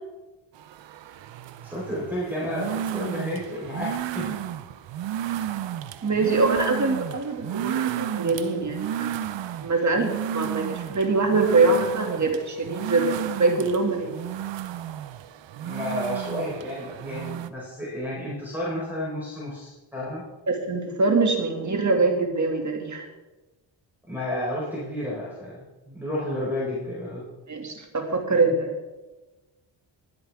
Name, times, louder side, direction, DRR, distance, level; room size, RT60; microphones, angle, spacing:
sound 1, 0.6-17.5, right 11 dB, 70° right, 0.7 m, -33 dB
voice 1, 1.6-4.3 6.2-6.4 10.4-10.5 15.6-20.2 24.1-27.3, left 1 dB, 5° right, -7 dB, 4.3 m, -31 dB
voice 2, 6.0-9.2 9.6-14.2 20.5-23.1 27.5-28.7, right 3 dB, 40° right, 3 dB, 2.3 m, -24 dB
20.5 x 8.0 x 3.6 m, 1.1 s
cardioid pair, 90°, 46 cm